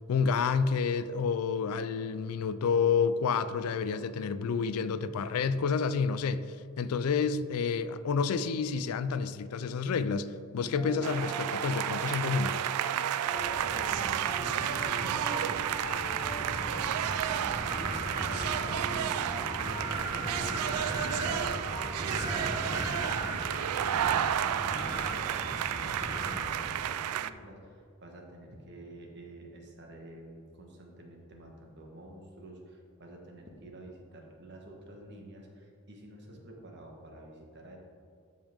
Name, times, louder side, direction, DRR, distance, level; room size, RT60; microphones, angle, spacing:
voice 1, 0.1-12.6, left 5 dB, 75° left, 0.4 m, -29 dB
sound 1, 10.5-22.6, equal, 5° left, 1.4 m, -45 dB
sound 2, 11.0-27.3, right 10 dB, 80° right, 0.3 m, -32 dB
Wind, 13.3-26.9, right 1 dB, 20° right, 0.8 m, -38 dB
voice 2, 13.7-21.8 22.0-37.8, right 1 dB, 50° right, 1.3 m, -49 dB
12.0 x 5.4 x 3.5 m
head